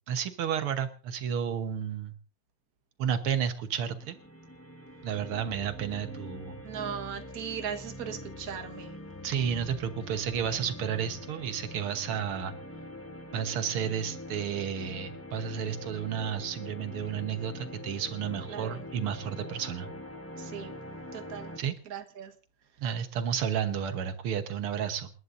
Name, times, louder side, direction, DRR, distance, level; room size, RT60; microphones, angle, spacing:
voice 1, 0.1-2.1 3.0-4.2 5.0-6.6 9.2-12.5 13.3-19.9 21.6-21.7 22.8-25.1, right 8 dB, 85° right, 2.1 m, -32 dB
sound 1, 3.7-21.6, left 1 dB, 10° left, 1.2 m, -44 dB
voice 2, 6.6-9.0 18.5-18.8 20.4-20.8 21.1-21.5 21.9-22.3, right 8 dB, 45° right, 1.8 m, -38 dB
29.0 x 11.0 x 2.6 m
omnidirectional pair, 2.3 m